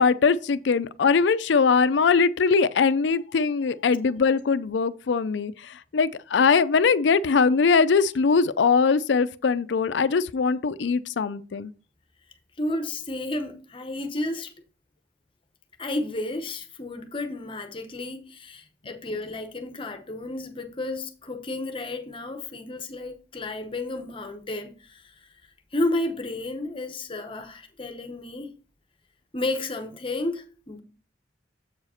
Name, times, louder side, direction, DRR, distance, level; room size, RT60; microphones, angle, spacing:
voice 1, 0.0-11.7, left 5 dB, 80° left, 0.4 m, -21 dB
voice 2, 12.6-14.5 15.8-25.3 25.7-28.5 29.3-30.8, left 2 dB, 30° left, 0.8 m, -32 dB
7.5 x 4.8 x 4.3 m
head